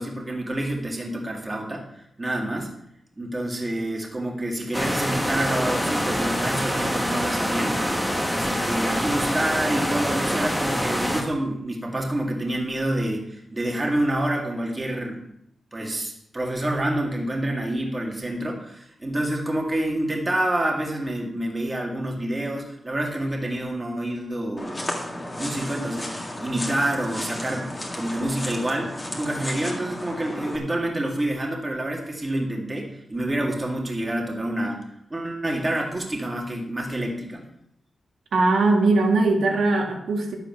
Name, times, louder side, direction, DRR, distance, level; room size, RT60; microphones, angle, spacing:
voice 1, 0.0-1.9 2.2-2.7 3.2-7.8 8.3-15.2 15.7-27.7 27.9-34.8 35.1-37.4, right 1 dB, 15° right, 0 dB, 2.0 m, -28 dB
sound 1, 4.7-11.2, equal, ahead, 1.5 m, -25 dB
sound 2, 24.6-30.6, left 1 dB, 20° left, 2.0 m, -33 dB
voice 2, 38.3-40.3, right 3 dB, 85° right, 1 dB, 2.0 m, -20 dB
11.5 x 8.0 x 5.9 m, 0.77 s
wide cardioid pair, 170°, 0 cm